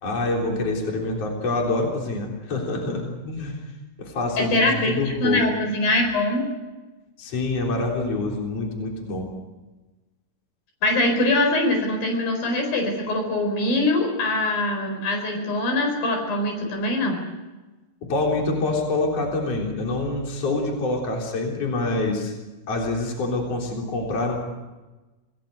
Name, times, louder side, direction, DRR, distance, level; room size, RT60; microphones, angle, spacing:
voice 1, 0.0-3.6 4.0-5.4 7.2-9.3 18.0-22.3 22.7-24.4, left 2 dB, 45° left, 0 dB, 4.5 m, -26 dB
voice 2, 4.4-6.4 10.8-17.2, left 2 dB, 75° left, 3 dB, 6.4 m, -23 dB
27.0 x 18.5 x 8.0 m, 1.2 s
omnidirectional pair, 4.1 m